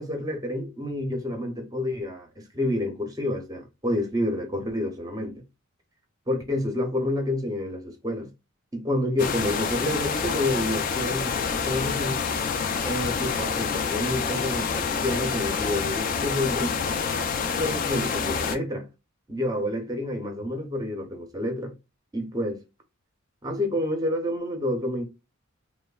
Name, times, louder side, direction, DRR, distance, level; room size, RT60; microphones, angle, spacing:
voice 1, 0.0-5.4 6.3-8.3 8.7-12.2 12.8-16.7 17.6-18.9 19.3-21.7 22.1-22.6 23.4-25.0, left 1 dB, 15° right, 0.6 m, -29 dB
sound 1, 9.2-18.6, left 6 dB, 40° left, 0.3 m, -27 dB
3.1 x 2.1 x 2.3 m
head